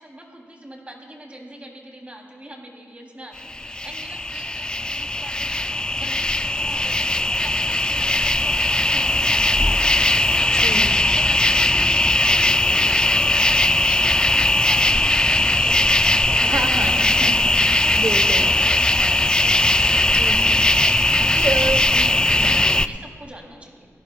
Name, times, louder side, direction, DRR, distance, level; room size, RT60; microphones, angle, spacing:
voice 1, 0.0-10.7 11.1-12.2 12.7-16.6 17.4-18.1 18.4-19.1 20.7-21.5 21.8-23.9, right 1 dB, 25° right, 0 dB, 3.2 m, -43 dB
sound 1, 3.4-22.9, left 1 dB, 15° left, 0.4 m, -19 dB
voice 2, 10.6-11.0 16.3-18.5 20.1-20.6 21.3-22.1 22.4-22.7, right 3 dB, 65° right, 7 dB, 1.1 m, -29 dB
26.5 x 17.0 x 2.4 m, 2.2 s
wide cardioid pair, 85°, 5 cm